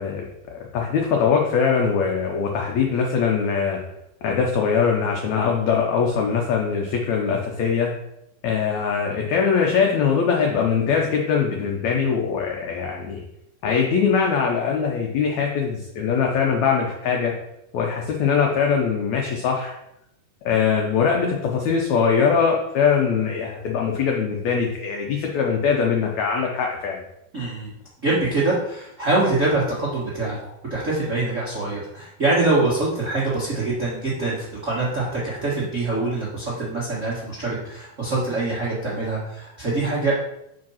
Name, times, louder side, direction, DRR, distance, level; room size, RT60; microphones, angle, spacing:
voice 1, 0.0-3.8 4.2-7.9 8.4-13.2 13.6-17.3 17.7-19.8 20.4-27.0, left 6 dB, 80° left, 0 dB, 1.6 m, -22 dB
voice 2, 27.3-27.7 28.0-30.4 30.7-40.1, right 2 dB, 60° right, -7 dB, 0.7 m, -24 dB
5.2 x 5.0 x 5.6 m, 0.82 s
omnidirectional pair, 4.3 m